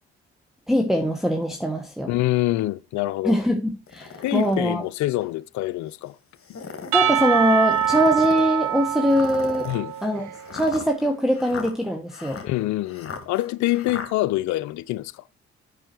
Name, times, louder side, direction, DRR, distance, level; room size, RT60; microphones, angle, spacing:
voice 1, 0.7-2.1 3.2-4.8 6.9-9.7 10.0-10.3 10.5-12.4, equal, ahead, 1.3 m, -22 dB
voice 2, 2.1-3.4 4.2-6.2 9.7-9.9 12.4-15.2, left 17 dB, 70° left, 0.6 m, -25 dB
sound 1, 3.9-4.6 5.2-5.3 6.3-7.0 7.7-8.5 9.1-14.1, left 6 dB, 45° left, 1.9 m, -37 dB
Percussion / Church bell, 6.9-10.6, right 9 dB, 75° right, 0.9 m, -24 dB
8.9 x 5.6 x 4.5 m
hypercardioid pair, 45°, 30 cm